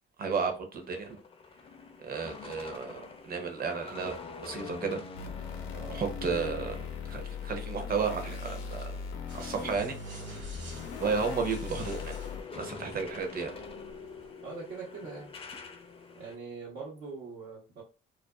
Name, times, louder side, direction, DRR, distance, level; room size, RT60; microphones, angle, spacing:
voice 1, 0.2-1.2 2.0-4.2 4.4-5.1 5.9-6.8 7.0-8.8 9.3-9.9 11.0-12.2 12.5-13.5, right 5 dB, 50° right, 0.7 m, -33 dB
sound 1, 0.8-9.2 9.5-16.3, left 4 dB, 30° left, 0.4 m, -46 dB
sound 2, 5.1-12.4, left 6 dB, 90° left, 0.5 m, -39 dB
sound 3, 9.3-14.3, right 2 dB, 65° right, 1.3 m, -53 dB
voice 2, 14.4-15.4 16.1-17.8, right 4 dB, 85° right, 0.9 m, -42 dB
2.4 x 2.3 x 2.2 m
cardioid pair, 90°, 20 cm